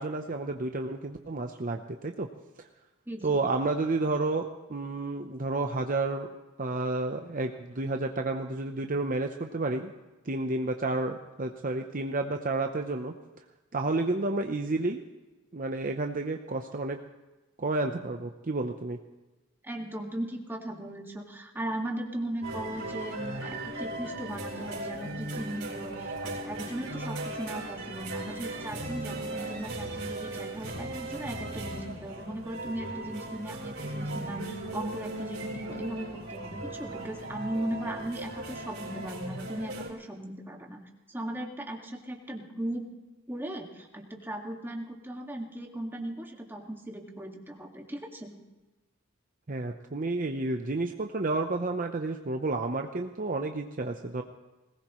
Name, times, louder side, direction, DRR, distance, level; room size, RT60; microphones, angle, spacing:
voice 1, 0.0-2.3 2.6-2.7 3.2-6.3 6.6-9.9 10.2-13.1 13.7-15.0 15.5-17.0 17.6-19.0 49.5-54.2, right 2 dB, 40° right, 4 dB, 0.8 m, -31 dB
voice 2, 3.1-3.4 19.6-40.8 41.1-42.9 43.3-48.4, right 1 dB, 10° right, 1 dB, 2.0 m, -37 dB
sound 1, 22.4-39.9, right 2 dB, 70° right, 4.6 m, -37 dB
20.5 x 18.5 x 3.1 m, 1.1 s
head